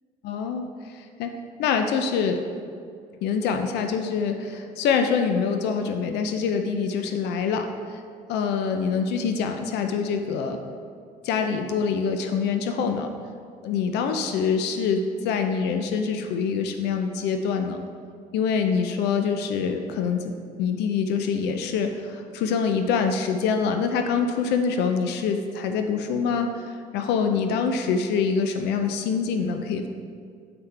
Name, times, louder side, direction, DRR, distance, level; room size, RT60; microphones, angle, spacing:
voice 1, 0.2-1.3 1.6-2.4 3.2-8.0 8.3-10.6 11.2-13.1 13.6-17.8 18.3-29.9, left 6 dB, 80° left, 6 dB, 0.5 m, -25 dB
7.7 x 5.7 x 3.3 m, 2.3 s
cardioid pair, 110°, 17 cm